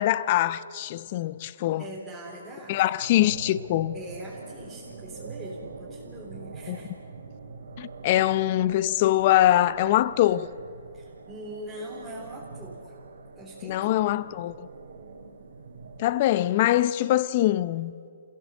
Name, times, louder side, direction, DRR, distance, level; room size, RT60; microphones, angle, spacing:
voice 1, 0.0-1.8 2.7-3.9 6.7-6.8 7.8-10.5 13.6-14.7 16.0-17.9, left 14 dB, 40° left, 0.6 m, -23 dB
voice 2, 1.8-2.8 3.9-6.9 10.9-13.0 13.4-14.2, right 1 dB, ahead, 3.8 m, -42 dB
sound 1, 3.0-16.0, right 4 dB, 75° right, 3.4 m, -44 dB
29.0 x 15.5 x 8.2 m
hypercardioid pair, 150°, 0 cm